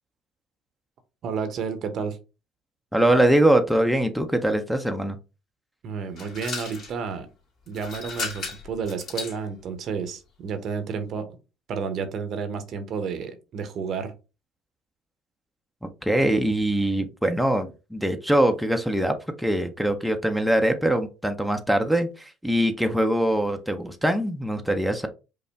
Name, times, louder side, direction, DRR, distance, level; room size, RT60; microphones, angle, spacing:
voice 1, 1.2-2.2 5.8-7.3 7.7-11.4 11.7-14.1, right 5 dB, 55° right, 8 dB, 0.8 m, -31 dB
voice 2, 2.9-5.2 15.8-25.1, right 1 dB, ahead, 5 dB, 0.7 m, -23 dB
sound 1, 6.2-6.9 7.7-9.4, left 4 dB, 55° left, 2.3 m, -34 dB
5.2 x 2.1 x 3.4 m, 0.30 s
hypercardioid pair, 65°, 0 cm